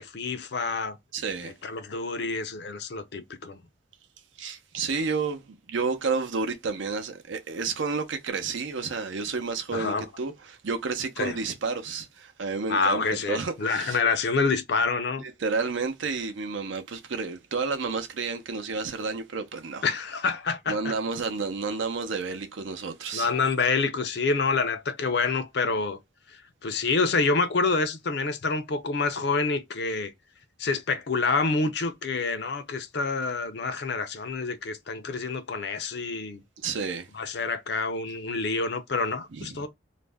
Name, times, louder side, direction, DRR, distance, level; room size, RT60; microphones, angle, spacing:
voice 1, 0.0-1.0 1.6-3.6 9.7-10.0 11.2-11.4 12.7-15.2 19.8-20.9 23.1-26.0 26.6-30.1 30.6-36.4 37.1-39.7, left 4 dB, 60° left, 0.5 m, -27 dB
voice 2, 1.1-1.5 4.4-13.0 13.3-14.0 15.2-19.8 20.7-23.3 36.6-37.1 39.3-39.7, right 4 dB, 85° right, 0.6 m, -31 dB
2.5 x 2.1 x 3.3 m
head